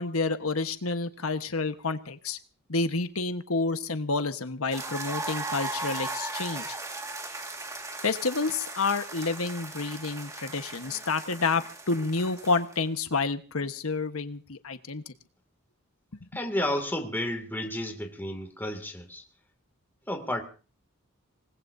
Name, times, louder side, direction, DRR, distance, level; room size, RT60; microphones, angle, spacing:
voice 1, 0.0-2.4 2.7-6.8 8.0-15.1, left 3 dB, 85° left, 1.3 m, -29 dB
sound 1, 4.7-12.8, right 2 dB, 15° right, 1.9 m, -37 dB
voice 2, 16.3-19.2 20.1-20.4, left 1 dB, 10° left, 2.4 m, -31 dB
26.0 x 19.5 x 2.7 m
head